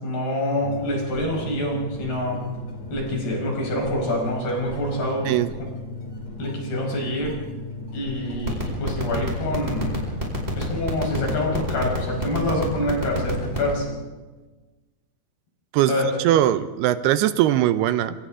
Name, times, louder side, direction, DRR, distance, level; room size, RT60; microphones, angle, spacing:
voice 1, 0.0-2.4 2.9-5.3 5.6-5.7 6.4-7.4 7.9-10.0 10.6-13.9 15.9-16.1, left 1 dB, 70° left, -1 dB, 7.1 m, -26 dB
sound 1, 0.6-13.9, left 2 dB, 50° left, 4.0 m, -36 dB
sound 2, 8.3-13.7, equal, 15° right, 4.9 m, -27 dB
voice 2, 16.2-18.2, right 12 dB, 80° right, 12 dB, 2.8 m, -20 dB
26.5 x 26.0 x 3.8 m, 1.3 s
omnidirectional pair, 4.7 m